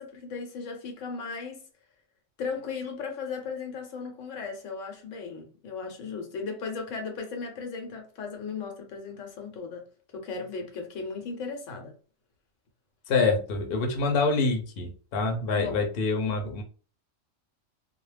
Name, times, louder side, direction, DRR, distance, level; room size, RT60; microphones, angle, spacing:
voice 1, 0.0-1.6 2.4-9.8 10.1-11.9 15.5-15.9, left 5 dB, 80° left, 1.0 m, -36 dB
voice 2, 13.1-16.6, left 3 dB, 55° left, 0.8 m, -26 dB
2.3 x 2.0 x 3.2 m
omnidirectional pair, 1.3 m